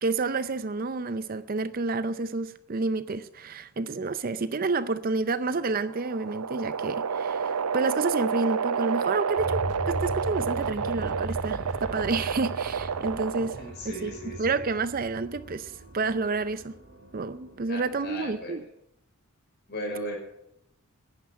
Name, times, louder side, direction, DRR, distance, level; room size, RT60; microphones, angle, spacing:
voice 1, 0.0-13.6 13.8-16.7 17.1-18.6, right 3 dB, 40° right, 0.5 m, -29 dB
sound 1, 5.5-13.8, right 6 dB, 90° right, 0.5 m, -30 dB
Ore Mine, 9.4-18.6, right 1 dB, 60° right, 2.3 m, -39 dB
voice 2, 13.6-14.3 17.7-18.5 19.7-20.2, equal, 50° left, 5.5 m, -36 dB
11.0 x 9.5 x 9.3 m
head